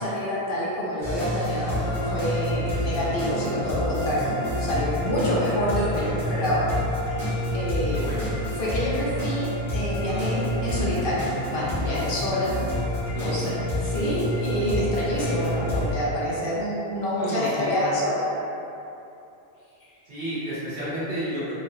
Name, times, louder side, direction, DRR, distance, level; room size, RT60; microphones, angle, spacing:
voice 1, 0.0-6.7 7.5-8.1 8.6-12.6 13.2-18.4, equal, 60° left, -7 dB, 0.7 m, -27 dB
sound 1, 1.0-15.9, left 1 dB, 5° left, 0.9 m, -28 dB
voice 2, 7.9-8.3 13.1-13.5 17.2-17.7 20.1-21.5, right 1 dB, 60° right, -11 dB, 1.0 m, -32 dB
3.0 x 2.3 x 2.6 m, 2.8 s
omnidirectional pair, 1.1 m